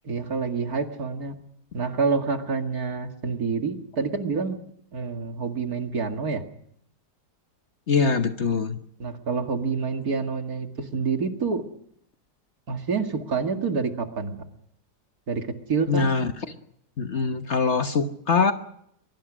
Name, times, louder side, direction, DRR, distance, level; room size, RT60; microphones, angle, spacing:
voice 1, 0.0-1.3 1.7-4.6 4.9-6.4 9.0-11.6 12.7-14.4 15.3-16.1, right 5 dB, 65° right, 6 dB, 2.6 m, -27 dB
voice 2, 7.9-8.8 15.9-16.3 17.0-18.5, left 5 dB, 45° left, 8 dB, 1.3 m, -23 dB
23.5 x 22.5 x 6.2 m, 0.71 s
omnidirectional pair, 1.7 m